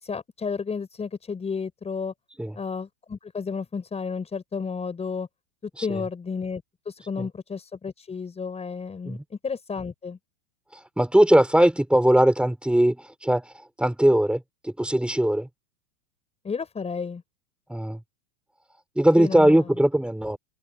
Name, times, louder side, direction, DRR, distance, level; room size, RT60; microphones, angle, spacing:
voice 1, 0.0-2.1 2.5-5.3 5.8-10.2 16.4-17.2 19.2-19.7, left 5 dB, 15° left, 5.8 m, -32 dB
voice 2, 11.0-13.5 13.8-15.5 17.7-18.0 19.0-20.4, right 1 dB, 5° right, 7.1 m, -20 dB
supercardioid pair, 130°, 39 cm